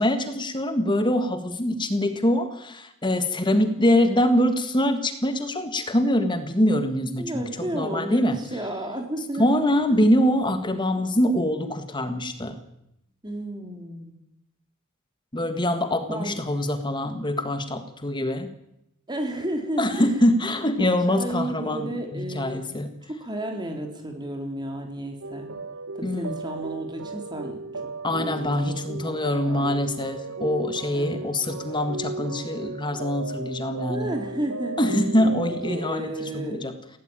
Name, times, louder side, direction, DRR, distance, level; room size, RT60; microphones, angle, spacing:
voice 1, 0.0-8.4 9.4-12.6 15.3-18.5 19.8-22.9 26.0-26.4 28.0-34.1 34.8-36.1 36.3-36.7, left 1 dB, 20° left, 9 dB, 1.6 m, -24 dB
voice 2, 7.2-9.5 9.9-10.0 13.2-14.1 16.1-16.4 19.1-20.1 20.5-22.7 23.1-25.5 25.9-27.6 28.1-29.8 30.9-31.2 33.9-35.3 35.7-36.6, right 1 dB, 20° right, 3 dB, 4.0 m, -32 dB
sound 1, 25.2-35.9, right 3 dB, 75° right, 1.2 m, -35 dB
19.5 x 17.0 x 8.9 m, 0.81 s
head